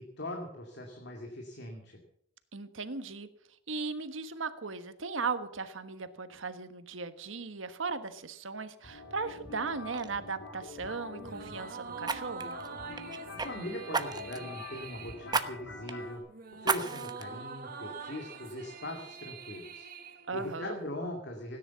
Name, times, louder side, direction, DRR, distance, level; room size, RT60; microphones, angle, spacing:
voice 1, 0.0-2.0 13.3-16.2 16.5-21.6, left 1 dB, 60° left, 2 dB, 2.3 m, -41 dB
voice 2, 2.5-3.3 3.7-12.5 20.3-20.8, right 4 dB, 75° right, 10 dB, 1.4 m, -37 dB
sound 1, 8.8-16.2, left 2 dB, 75° left, 3.8 m, -46 dB
Fire, 9.3-9.6 9.9-10.1 12.0-13.5 13.9-14.5 15.3-15.5 15.9-16.0 16.6-17.2 17.8-17.9, right 4 dB, 20° right, 1.0 m, -32 dB
sound 2, 11.2-20.9, right 5 dB, 45° right, 1.6 m, -45 dB
17.0 x 10.0 x 7.0 m, 0.73 s
head